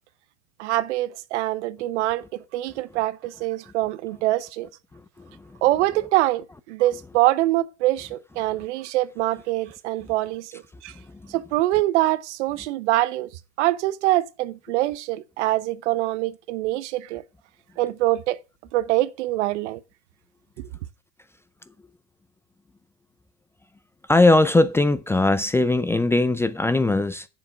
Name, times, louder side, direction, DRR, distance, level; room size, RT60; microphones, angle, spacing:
voice 1, 0.6-4.7 5.6-10.9 11.3-17.2 17.8-18.4 18.7-19.8 20.6-20.7, right 16 dB, 75° right, 0.8 m, -24 dB
voice 2, 4.9-5.6 11.0-11.3 24.1-27.3, left 2 dB, 5° left, 0.4 m, -20 dB
7.7 x 7.1 x 6.5 m
supercardioid pair, 120°, 35 cm